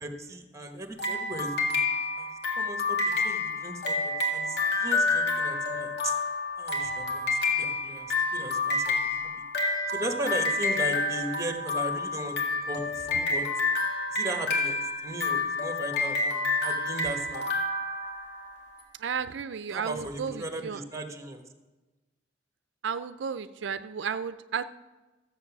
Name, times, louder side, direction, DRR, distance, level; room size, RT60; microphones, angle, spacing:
voice 1, 0.0-1.8 2.2-2.3 2.6-6.2 6.6-9.3 9.9-13.5 14.1-17.4 19.7-21.4, right 2 dB, 15° right, 6 dB, 1.2 m, -37 dB
sound 1, 1.0-18.7, left 3 dB, 65° left, 1.9 m, -29 dB
voice 2, 19.0-20.8 22.8-24.6, right 6 dB, 85° right, 12 dB, 0.4 m, -33 dB
14.0 x 7.6 x 6.0 m, 1.2 s
head